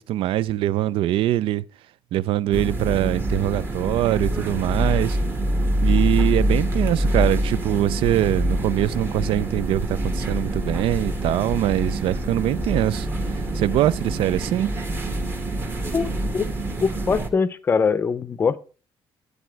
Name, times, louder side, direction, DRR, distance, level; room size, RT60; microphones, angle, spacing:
voice 1, 0.0-1.6 2.1-5.2 5.8-13.1 13.5-14.7, right 13 dB, 75° right, 0.4 m, -23 dB
sound 1, 2.5-17.3, right 1 dB, 25° right, 1.1 m, -25 dB
voice 2, 16.8-18.6, left 5 dB, 25° left, 0.6 m, -22 dB
9.8 x 8.2 x 4.5 m
cardioid pair, 175°, 9 cm